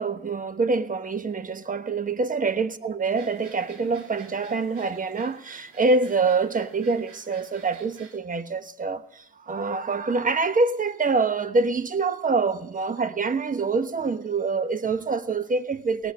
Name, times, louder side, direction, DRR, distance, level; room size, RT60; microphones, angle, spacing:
voice 1, 0.0-16.1, right 4 dB, 25° right, 1.1 m, -25 dB
sound 1, 3.0-8.2, right 5 dB, 80° right, 3.0 m, -51 dB
18.5 x 8.2 x 8.1 m
cardioid pair, 90°, 30 cm